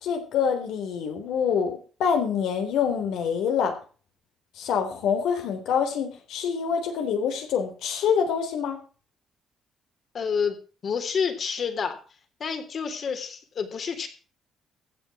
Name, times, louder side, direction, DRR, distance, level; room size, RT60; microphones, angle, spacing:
voice 1, 0.0-3.7 4.6-8.8, left 7 dB, 85° left, 5 dB, 3.6 m, -26 dB
voice 2, 10.1-10.6 10.8-12.0 12.4-14.1, left 6 dB, 50° left, 7 dB, 3.3 m, -28 dB
15.0 x 8.5 x 6.1 m, 0.39 s
cardioid pair, 90°, 0 cm